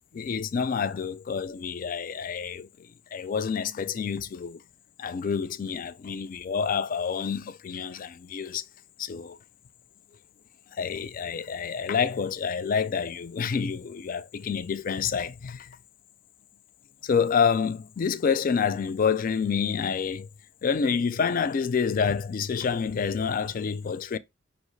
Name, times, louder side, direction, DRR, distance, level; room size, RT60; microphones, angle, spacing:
voice 1, 0.1-2.7 3.1-4.6 5.0-8.6 9.0-9.4 10.8-15.7 17.0-20.3 20.6-24.2, left 6 dB, 45° left, 0.3 m, -28 dB
5.5 x 2.8 x 3.1 m
head